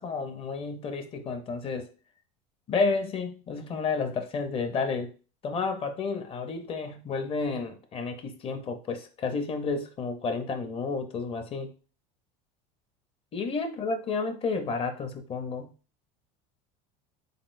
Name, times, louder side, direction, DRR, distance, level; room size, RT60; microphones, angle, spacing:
voice 1, 0.0-1.9 2.7-5.1 5.4-11.7 13.3-15.7, left 4 dB, 30° left, 0.7 m, -31 dB
4.1 x 3.6 x 2.6 m
supercardioid pair, 125°, 18 cm